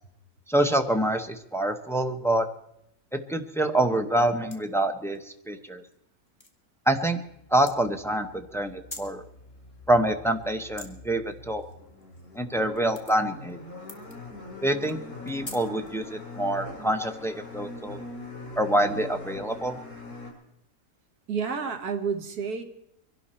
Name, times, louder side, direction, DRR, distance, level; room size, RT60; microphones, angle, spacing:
voice 1, 0.5-2.5 3.3-5.8 6.9-7.2 7.5-9.2 9.9-11.6 12.4-13.6 14.6-15.0 15.2-18.0 18.6-19.8, right 1 dB, ahead, 6 dB, 0.7 m, -26 dB
sound 1, 4.5-5.2 5.8-6.0 6.3-6.5 7.6-7.7 8.7-9.2 10.3-10.9 11.3-12.4 12.7-13.5 13.8-14.1 14.8-16.1, left 2 dB, 20° left, 1.7 m, -44 dB
sound 2, 7.3-20.3, left 2 dB, 65° left, 4.7 m, -43 dB
voice 2, 21.3-22.6, right 5 dB, 85° right, 5 dB, 1.9 m, -30 dB
23.5 x 12.0 x 4.3 m, 0.79 s
omnidirectional pair, 1.6 m